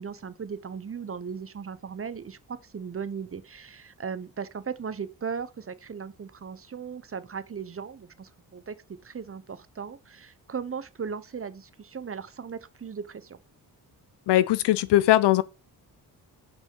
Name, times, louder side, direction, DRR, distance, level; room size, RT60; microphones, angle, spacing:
voice 1, 0.0-8.7 9.0-13.4, right 6 dB, 35° right, 0.9 m, -37 dB
voice 2, 14.3-15.4, left 14 dB, 80° left, 0.7 m, -20 dB
6.1 x 5.4 x 5.3 m
cardioid pair, 70°, 41 cm